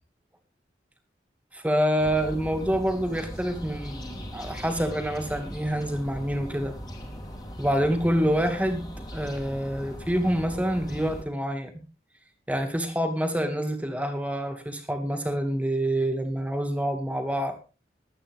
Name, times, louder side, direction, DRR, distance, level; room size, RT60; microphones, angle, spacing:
voice 1, 1.5-6.7 7.6-8.9 9.1-11.7 12.5-17.5, equal, 10° right, 5 dB, 2.3 m, -27 dB
sound 1, 2.0-11.2, equal, 20° left, 2.9 m, -39 dB
22.0 x 9.0 x 3.6 m, 0.33 s
head